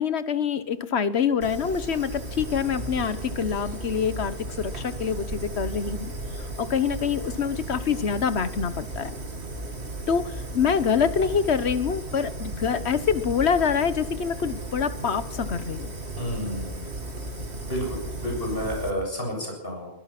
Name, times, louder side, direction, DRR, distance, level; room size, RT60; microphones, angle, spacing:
voice 1, 0.0-9.2 10.1-15.9, left 7 dB, 90° left, 13 dB, 1.4 m, -26 dB
Fire, 1.4-18.9, right 2 dB, 85° right, 2.8 m, -35 dB
voice 2, 16.2-16.9 17.6-19.9, equal, 65° left, 1 dB, 7.5 m, -30 dB
23.5 x 18.0 x 6.0 m, 0.83 s
omnidirectional pair, 1.1 m